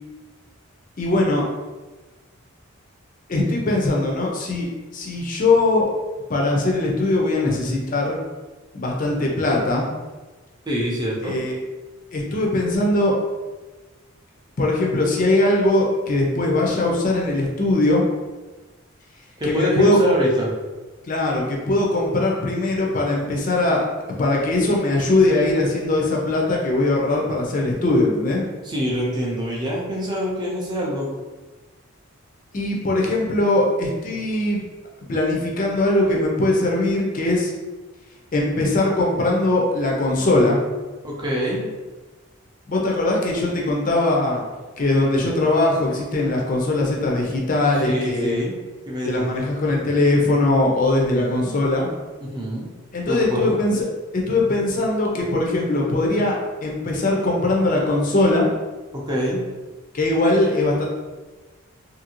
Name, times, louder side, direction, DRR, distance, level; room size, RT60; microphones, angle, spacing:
voice 1, 1.0-1.5 3.3-5.9 6.3-8.2 8.7-9.9 11.2-11.6 12.1-13.1 14.6-18.1 19.5-20.0 21.1-28.4 32.5-34.6 35.1-37.5 38.3-40.6 42.7-44.4 44.8-48.4 49.1-51.9 52.9-53.8 54.1-58.5 59.9-60.9, left 2 dB, 40° left, -1 dB, 0.4 m, -20 dB
voice 2, 7.5-7.8 10.7-11.4 19.4-20.5 28.6-31.1 41.0-41.6 47.8-48.5 48.9-49.4 51.1-51.6 52.2-52.7 53.1-53.6 58.9-59.4, equal, 20° right, -4 dB, 0.5 m, -25 dB
2.7 x 2.5 x 2.8 m, 1.2 s
head